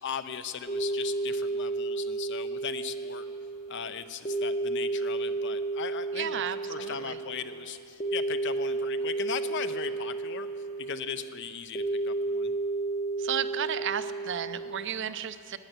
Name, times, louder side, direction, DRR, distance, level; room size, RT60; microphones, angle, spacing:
voice 1, 0.0-3.3 3.7-6.4 6.7-10.5 10.8-12.5, left 7 dB, 60° left, 11 dB, 0.6 m, -38 dB
sound 1, 0.7-14.9, right 2 dB, 25° left, 0.7 m, -32 dB
voice 2, 6.1-7.2 13.2-15.6, right 8 dB, 60° right, 12 dB, 0.5 m, -33 dB
12.0 x 9.1 x 9.0 m, 2.5 s
head